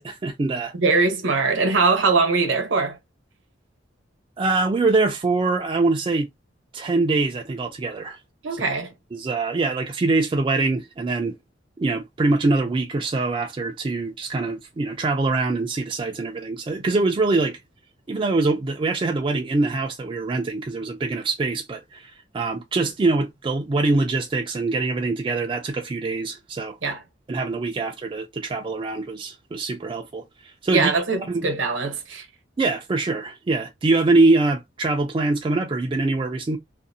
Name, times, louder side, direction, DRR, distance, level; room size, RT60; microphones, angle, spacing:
voice 1, 0.0-0.7 4.4-6.3 6.7-8.2 9.1-11.3 11.8-17.6 18.1-26.8 27.3-30.9 31.3-31.5 32.6-36.6, right 3 dB, 25° right, 0.3 m, -23 dB
voice 2, 0.7-3.0 8.4-8.9 26.8-27.0 30.7-32.3, right 4 dB, 75° right, 0.8 m, -21 dB
2.5 x 2.0 x 2.6 m
head